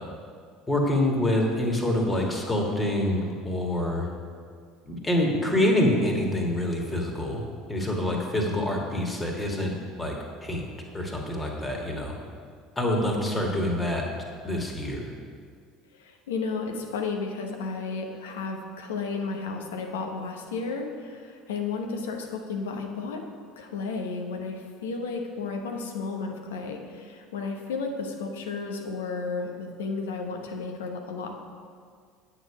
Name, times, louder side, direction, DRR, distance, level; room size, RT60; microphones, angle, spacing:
voice 1, 0.7-4.1 4.9-7.4 7.7-10.2 10.4-10.6 10.9-12.1 12.8-14.0 14.4-15.1, left 1 dB, 15° left, 0 dB, 1.9 m, -26 dB
voice 2, 15.9-23.3 23.6-31.4, left 4 dB, 70° left, 3 dB, 0.9 m, -33 dB
9.1 x 7.0 x 4.9 m, 2.1 s
figure-of-eight pair, 65°, 0 cm